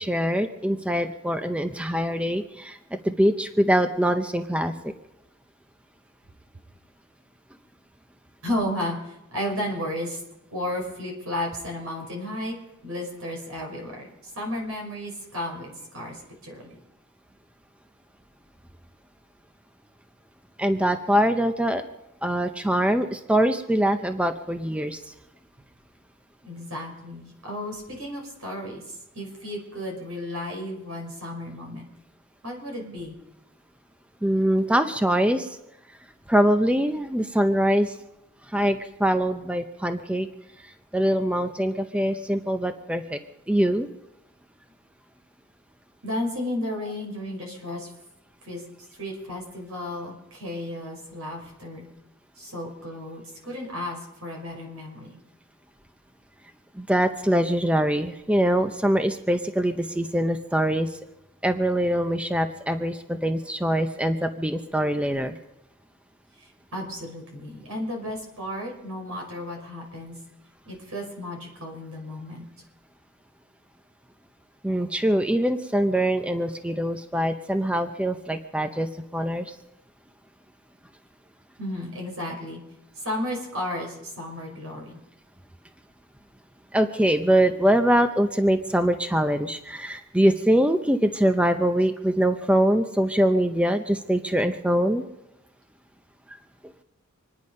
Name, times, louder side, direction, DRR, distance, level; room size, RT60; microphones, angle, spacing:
voice 1, 0.0-2.8 3.0-4.9 20.6-21.8 22.2-25.1 34.2-35.6 36.3-38.0 38.5-40.3 40.9-43.2 43.5-43.9 56.8-60.9 61.4-65.4 74.6-79.5 86.7-95.1, right 1 dB, 5° right, 8 dB, 0.6 m, -23 dB
voice 2, 8.4-10.2 10.5-12.6 12.8-16.8 26.4-31.9 32.4-33.2 46.0-47.9 48.4-48.6 49.0-51.9 52.4-55.2 66.4-70.2 70.7-72.4 81.6-82.6 83.0-85.0, left 1 dB, 85° right, 0 dB, 5.7 m, -33 dB
26.0 x 10.0 x 5.4 m, 0.88 s
head